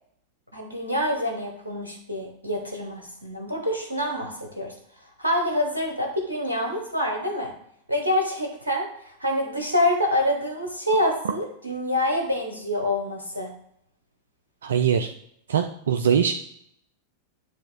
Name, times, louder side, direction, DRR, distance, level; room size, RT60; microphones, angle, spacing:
voice 1, 0.5-4.7 5.2-7.5 7.9-13.5, left 1 dB, 80° right, 1 dB, 1.0 m, -26 dB
voice 2, 14.6-15.1 15.5-16.3, right 8 dB, 65° right, 6 dB, 0.4 m, -22 dB
8.9 x 3.0 x 4.5 m, 0.71 s
figure-of-eight pair, 90°, 0 cm